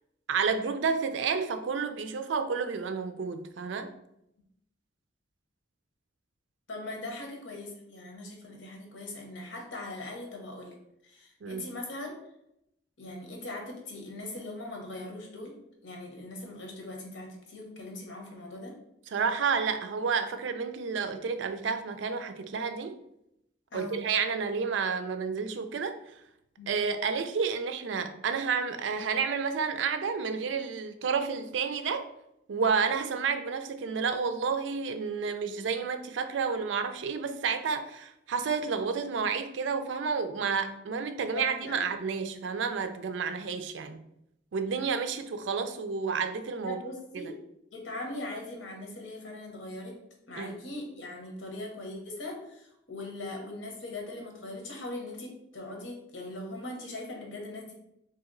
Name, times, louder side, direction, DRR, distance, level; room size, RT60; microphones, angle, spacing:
voice 1, 0.3-3.9 11.4-11.7 19.1-23.0 23.7-26.0 26.7-32.1 32.5-44.0 44.5-46.8 47.1-47.2 50.4-50.6, right 5 dB, 80° right, 8 dB, 0.4 m, -30 dB
voice 2, 6.7-10.8 11.0-12.2 13.0-18.8 23.7-24.0 26.6-26.8 41.3-41.8 46.6-47.4 47.7-50.0 50.3-57.7, left 2 dB, 85° left, 1 dB, 0.9 m, -40 dB
3.0 x 2.9 x 3.7 m, 0.79 s
head